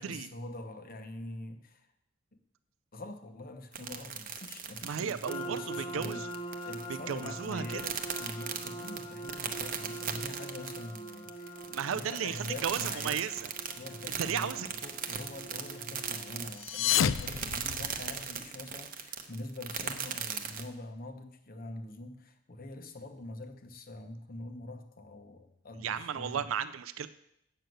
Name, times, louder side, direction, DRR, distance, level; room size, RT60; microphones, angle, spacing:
voice 1, 0.0-1.9 2.3-2.4 2.9-6.2 6.6-13.2 13.8-26.4, left 1 dB, 45° left, 6 dB, 0.9 m, -44 dB
sound 1, 3.7-20.7, right 7 dB, 45° right, 0.8 m, -38 dB
voice 2, 4.8-6.3 6.9-7.9 11.7-13.5 14.2-14.7 25.7-27.1, right 7 dB, 90° right, 13 dB, 0.4 m, -34 dB
sound 2, 5.3-16.5, right 1 dB, 25° left, 0.6 m, -43 dB
sound 3, 16.5-18.4, left 9 dB, 75° left, 0.4 m, -30 dB
7.7 x 6.5 x 7.8 m, 0.79 s
head